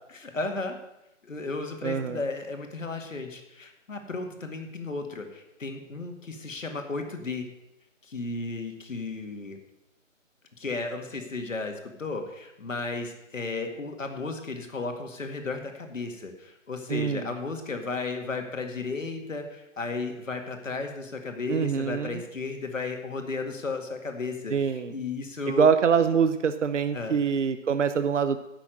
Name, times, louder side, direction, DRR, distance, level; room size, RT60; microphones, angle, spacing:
voice 1, 0.1-0.8 1.2-7.5 8.0-9.6 10.6-25.7 26.9-27.2, left 3 dB, 70° left, 5 dB, 2.1 m, -34 dB
voice 2, 1.8-2.2 16.9-17.3 21.5-22.2 24.5-24.9 25.5-28.4, right 6 dB, 65° right, 10 dB, 0.7 m, -24 dB
10.0 x 6.2 x 7.7 m, 0.91 s
figure-of-eight pair, 175°, 39 cm